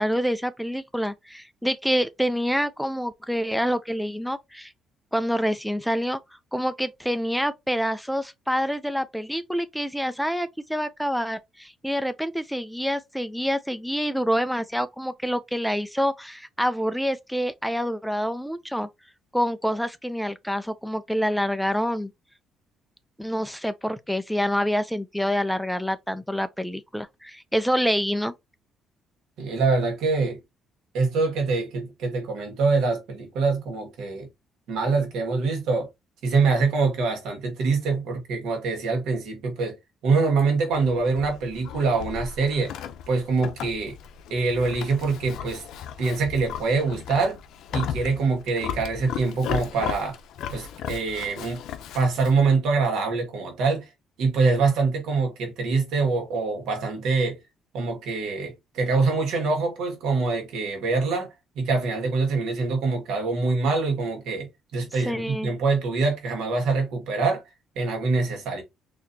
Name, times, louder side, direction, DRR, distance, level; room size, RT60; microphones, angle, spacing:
voice 1, 0.0-4.7 5.1-6.2 6.5-18.9 19.3-22.1 23.2-28.3 64.9-65.5, equal, ahead, 0.4 m, -27 dB
voice 2, 29.4-30.4 30.9-34.3 34.7-35.9 36.2-39.8 40.0-42.7 43.1-44.0 44.3-45.6 46.0-47.4 47.7-50.2 50.5-51.6 51.9-53.8 54.2-57.4 57.7-67.4 67.7-68.6, right 4 dB, 75° right, 1.6 m, -24 dB
Livestock farm animals working animals, 40.7-52.4, left 9 dB, 75° left, 0.6 m, -36 dB
4.2 x 2.8 x 2.7 m
cardioid pair, 150°, 0 cm